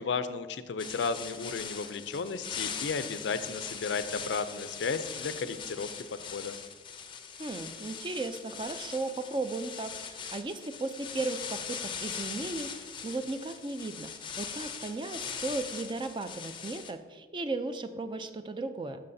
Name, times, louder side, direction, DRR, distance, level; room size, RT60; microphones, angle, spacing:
voice 1, 0.0-5.9 6.2-6.6, left 5 dB, 85° left, 12 dB, 0.4 m, -34 dB
sound 1, 0.8-16.9, left 6 dB, 30° left, 0.5 m, -41 dB
voice 2, 7.4-14.1 14.4-19.0, right 3 dB, 25° right, 9 dB, 0.3 m, -36 dB
11.0 x 6.4 x 2.6 m, 1.4 s
head